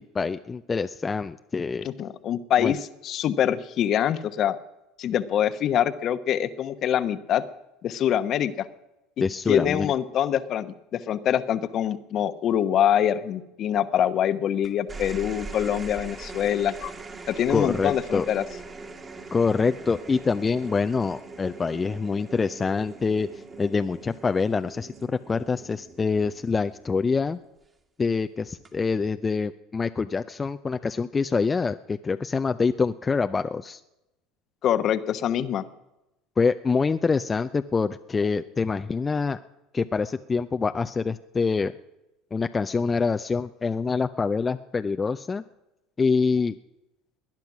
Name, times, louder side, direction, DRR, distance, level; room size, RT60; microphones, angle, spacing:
voice 1, 0.0-1.9 2.6-2.7 9.2-9.9 17.5-18.3 19.3-27.4 28.0-33.8 36.4-39.4 39.7-41.7 42.3-45.4 46.0-46.6, left 4 dB, 25° left, 9 dB, 0.5 m, -25 dB
voice 2, 1.8-2.8 3.0-4.6 5.0-7.4 7.8-8.7 9.2-16.9 17.3-18.4 34.6-35.6, left 10 dB, 50° left, 13 dB, 1.0 m, -24 dB
sound 1, 14.6-27.2 28.5-28.9, right 3 dB, 30° right, 2.4 m, -42 dB
19.5 x 10.5 x 6.1 m, 0.94 s
hypercardioid pair, 80°, 0 cm